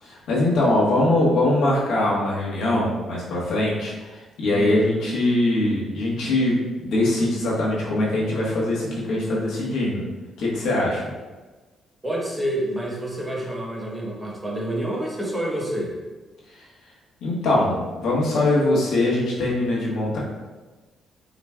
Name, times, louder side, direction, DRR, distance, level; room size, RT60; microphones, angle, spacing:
voice 1, 0.0-10.0 10.4-11.0 17.2-20.2, left 1 dB, 80° left, -5 dB, 1.3 m, -22 dB
voice 2, 12.0-15.9, right 1 dB, 10° right, -3 dB, 1.0 m, -28 dB
5.8 x 3.2 x 2.3 m, 1.2 s
cardioid pair, 90°, 0 cm